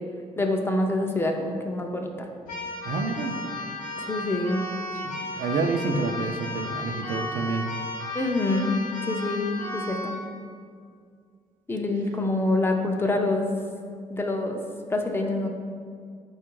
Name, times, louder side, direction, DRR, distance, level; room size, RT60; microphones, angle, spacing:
voice 1, 0.4-2.3 4.1-4.6 8.1-8.8 9.1-9.4 9.7-10.2 11.7-13.5 14.1-14.6 14.9-15.5, left 2 dB, 15° left, 3 dB, 0.4 m, -26 dB
Keyboard (musical), 2.5-10.2, left 2 dB, 80° left, 0.8 m, -34 dB
voice 2, 2.9-3.3 5.1-7.7, right 3 dB, 75° right, 4 dB, 0.4 m, -28 dB
4.3 x 2.4 x 4.5 m, 2.1 s
cardioid pair, 105°, 14 cm